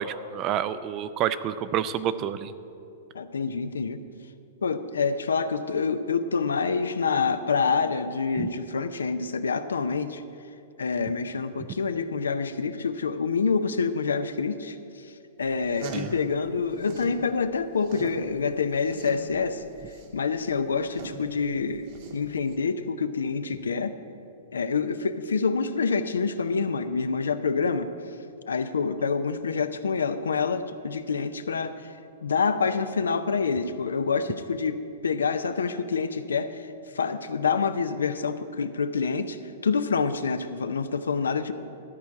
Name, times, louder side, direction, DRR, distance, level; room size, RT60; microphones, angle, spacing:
voice 1, 0.0-2.5 8.3-8.5 15.9-16.1, right 10 dB, 35° right, 13 dB, 0.5 m, -28 dB
voice 2, 3.1-4.0 4.6-10.2 10.8-15.1 15.4-19.6 20.1-21.9 22.1-24.0 24.5-27.9 28.5-31.9 32.2-41.5, left 5 dB, 90° left, 10 dB, 0.6 m, -27 dB
sound 1, 15.5-17.2 17.5-22.5, right 3 dB, 60° right, 1.9 m, -41 dB
13.0 x 4.6 x 8.5 m, 2.6 s
hypercardioid pair, 120°, 0 cm